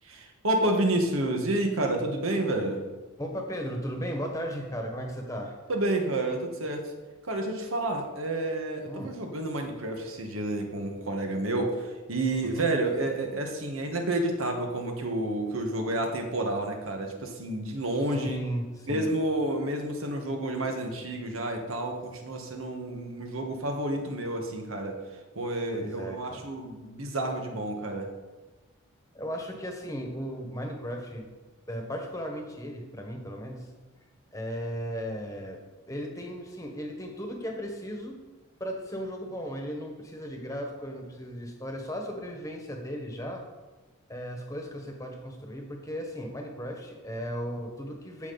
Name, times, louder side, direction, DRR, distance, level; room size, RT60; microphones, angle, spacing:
voice 1, 0.0-2.8 5.7-6.9 7.2-18.4 18.9-25.0 25.3-28.1, right 1 dB, 75° right, 3 dB, 1.6 m, -30 dB
voice 2, 3.2-5.5 8.9-9.2 12.4-12.7 18.1-19.1 25.7-26.5 29.1-31.2 31.7-33.7 34.3-35.6 35.9-38.2 38.6-43.4 44.1-48.3, equal, 15° left, 2 dB, 1.4 m, -36 dB
15.0 x 6.0 x 4.1 m, 1.2 s
head